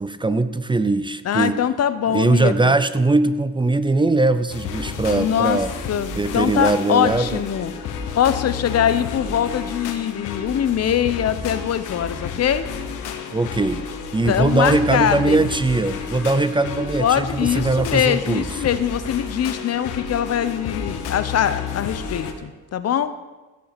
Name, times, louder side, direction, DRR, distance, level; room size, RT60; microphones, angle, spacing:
voice 1, 0.0-1.6 2.1-5.7 6.2-7.4 13.3-13.8 14.1-18.5, right 2 dB, 15° right, 12 dB, 0.6 m, -20 dB
voice 2, 1.2-2.8 5.1-5.6 5.9-7.7 8.1-12.7 14.3-15.4 17.0-23.2, left 9 dB, 55° left, 13 dB, 0.8 m, -22 dB
sound 1, 4.5-22.3, left 6 dB, 85° left, 1.4 m, -31 dB
16.5 x 5.6 x 6.7 m, 1.2 s
cardioid pair, 90°, 30 cm